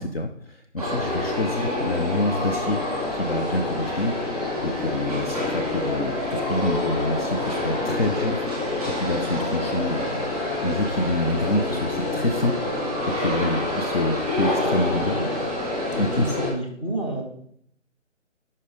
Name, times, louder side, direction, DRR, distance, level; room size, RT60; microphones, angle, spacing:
voice 1, 0.0-2.8 3.1-4.1 4.6-8.5 8.9-10.3 10.6-12.5 12.8-12.9 13.2-15.2 16.0-16.4, left 1 dB, 50° left, 5 dB, 0.5 m, -27 dB
sound 1, 0.8-16.5, left 2 dB, ahead, 1.8 m, -27 dB
voice 2, 14.9-15.3 15.9-17.2, right 1 dB, 25° left, 1 dB, 1.0 m, -30 dB
5.5 x 5.1 x 5.1 m, 0.68 s
figure-of-eight pair, 170°, 38 cm